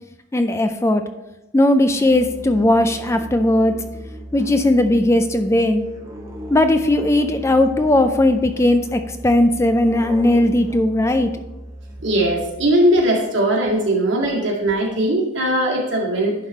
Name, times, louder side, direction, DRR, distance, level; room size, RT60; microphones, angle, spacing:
voice 1, 0.3-1.0 1.5-3.7 4.3-5.8 6.5-11.3, left 1 dB, 15° left, 8 dB, 0.4 m, -17 dB
Musical instrument, 1.9-12.7, right 1 dB, 15° right, 0.9 m, -37 dB
voice 2, 12.0-16.3, right 1 dB, 70° right, -2 dB, 2.1 m, -19 dB
11.0 x 4.2 x 4.4 m, 0.96 s
head